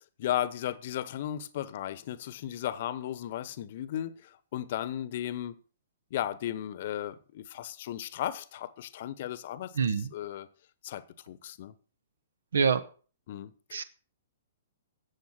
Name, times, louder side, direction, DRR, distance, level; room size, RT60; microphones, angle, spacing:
voice 1, 0.2-5.6 6.1-9.7 10.1-10.5 10.8-11.7 13.3-13.5, left 11 dB, 45° left, 1.1 m, -35 dB
voice 2, 9.7-10.1 12.5-12.8 13.7-13.8, right 6 dB, 65° right, 1.3 m, -25 dB
13.5 x 8.3 x 6.0 m
figure-of-eight pair, 115°, 0 cm